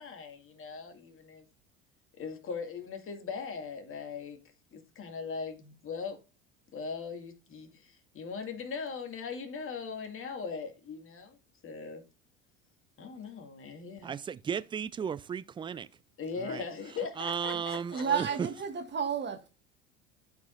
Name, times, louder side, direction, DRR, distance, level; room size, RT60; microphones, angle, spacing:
voice 1, 0.0-1.4 2.1-4.4 4.7-6.2 6.7-11.4 11.6-12.0 13.0-14.1 16.2-18.1, left 5 dB, 35° left, 2.0 m, -40 dB
voice 2, 14.0-15.9 16.4-16.6 17.2-18.5, right 7 dB, 15° right, 0.3 m, -35 dB
voice 3, 17.9-19.5, right 7 dB, 30° right, 1.6 m, -32 dB
12.5 x 4.8 x 2.5 m
hypercardioid pair, 70°, 35 cm